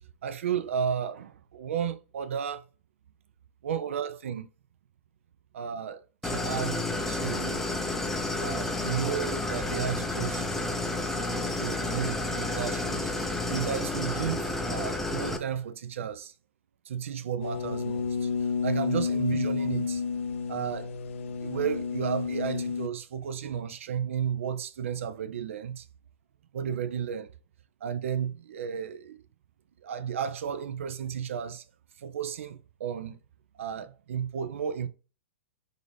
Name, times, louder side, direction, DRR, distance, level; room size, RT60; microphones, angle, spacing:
voice 1, 0.2-2.6 3.6-4.5 5.5-6.8 7.1-7.7 8.4-10.5 11.5-13.1 13.5-16.3 16.9-18.3 18.6-20.0 20.5-20.9 21.4-25.9 26.5-27.3 27.8-29.2 29.8-31.6 32.0-33.2 33.6-34.9, right 8 dB, 70° right, 0.4 m, -33 dB
Idling, 6.2-15.4, left 2 dB, 5° left, 0.4 m, -31 dB
sound 1, 17.4-22.9, left 5 dB, 70° left, 0.4 m, -30 dB
3.8 x 2.7 x 3.2 m
hypercardioid pair, 115°, 7 cm